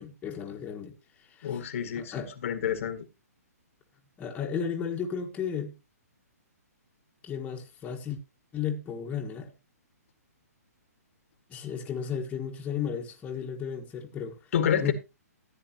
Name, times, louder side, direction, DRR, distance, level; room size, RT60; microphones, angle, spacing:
voice 1, 0.0-1.6 1.9-2.3 4.2-5.7 7.2-8.2 8.5-9.5 11.5-14.4 14.8-14.9, left 7 dB, 15° left, 1.6 m, -34 dB
voice 2, 1.4-3.0 14.5-14.9, left 8 dB, 50° left, 1.6 m, -28 dB
14.0 x 9.5 x 2.9 m
hypercardioid pair, 145°, 9 cm